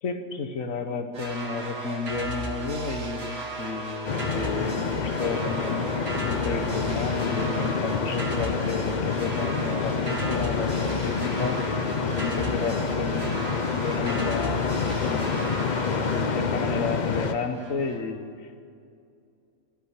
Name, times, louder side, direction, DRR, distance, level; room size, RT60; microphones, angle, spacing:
voice 1, 0.0-14.7 15.0-18.6, left 4 dB, 90° left, 7 dB, 1.6 m, -32 dB
sound 1, 1.1-18.0, right 2 dB, 50° right, 1.9 m, -35 dB
sound 2, 4.0-17.3, left 5 dB, 45° left, 0.7 m, -28 dB
13.5 x 10.5 x 9.7 m, 2.4 s
omnidirectional pair, 1.3 m